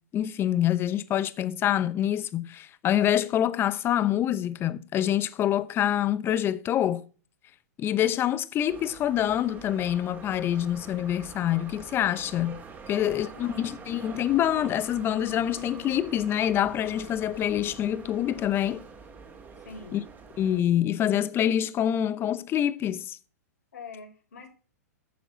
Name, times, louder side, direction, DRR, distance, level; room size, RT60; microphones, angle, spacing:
voice 1, 0.1-7.0 7.8-12.6 12.9-18.8 19.9-20.0 20.4-23.2, left 11 dB, 25° left, 0.8 m, -26 dB
sound 1, 8.7-20.6, right 5 dB, 20° right, 2.4 m, -45 dB
voice 2, 12.9-14.0 19.5-20.1 23.7-24.5, left 4 dB, 75° left, 4.2 m, -46 dB
10.5 x 7.0 x 5.7 m
hypercardioid pair, 115°, 9 cm